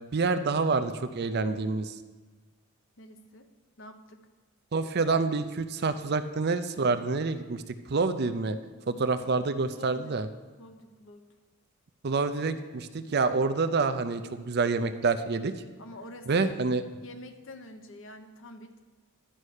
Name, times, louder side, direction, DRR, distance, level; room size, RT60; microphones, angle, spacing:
voice 1, 0.1-1.9 4.7-7.6 7.9-8.6 8.9-10.3 12.0-15.5 16.3-16.8, right 4 dB, 45° right, 10 dB, 0.5 m, -27 dB
voice 2, 3.0-3.5 3.8-4.3 9.0-9.5 9.7-10.2 10.6-11.3 15.8-16.6 17.0-18.8, left 2 dB, 55° left, 7 dB, 0.8 m, -47 dB
11.5 x 5.4 x 6.4 m, 1.3 s
head